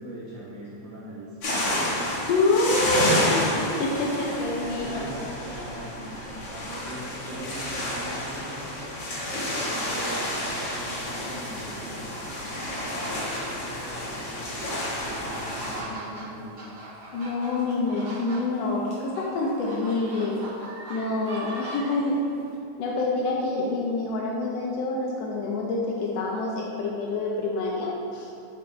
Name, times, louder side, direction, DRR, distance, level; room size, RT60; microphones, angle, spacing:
voice 1, 0.0-1.4 4.6-8.7 9.4-16.5, right 1 dB, 80° right, -7 dB, 1.0 m, -41 dB
sound 1, 1.4-15.8, left 1 dB, 45° left, 1.7 m, -30 dB
voice 2, 2.3-5.0 17.1-20.4 20.9-22.3 22.8-28.3, left 2 dB, 75° left, -2 dB, 1.6 m, -27 dB
sound 2, 14.6-22.4, right 1 dB, 60° right, 2.5 m, -40 dB
6.4 x 5.4 x 3.2 m, 2.6 s
omnidirectional pair, 3.3 m